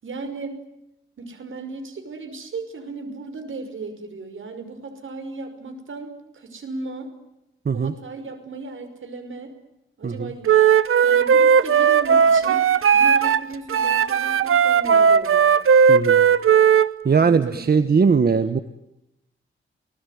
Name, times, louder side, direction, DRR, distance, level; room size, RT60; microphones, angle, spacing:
voice 1, 0.0-0.5 1.2-7.1 7.7-9.5 10.0-10.5 11.0-12.6 12.9-15.5 17.2-18.1, right 3 dB, 70° right, 8 dB, 5.6 m, -36 dB
Wind instrument woodwind instrument, 10.5-13.4 13.7-16.9, right 7 dB, 90° right, 1.1 m, -16 dB
voice 2, 15.9-16.2 17.0-18.6, right 5 dB, 50° right, 10 dB, 1.3 m, -19 dB
29.0 x 20.0 x 9.5 m, 0.89 s
wide cardioid pair, 100°, 21 cm